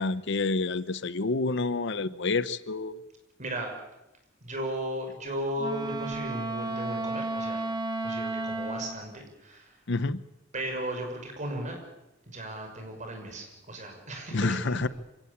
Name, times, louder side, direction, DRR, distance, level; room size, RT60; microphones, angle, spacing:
voice 1, 0.0-3.0 9.9-10.2 14.3-14.9, left 3 dB, 65° left, 15 dB, 0.8 m, -28 dB
voice 2, 3.4-3.7 4.4-7.6 8.0-9.8 10.5-11.8 12.3-14.8, right 1 dB, 40° right, 3 dB, 6.1 m, -36 dB
Wind instrument woodwind instrument, 5.6-9.0, right 2 dB, 20° right, 2.6 m, -33 dB
26.5 x 17.0 x 8.7 m, 0.94 s
head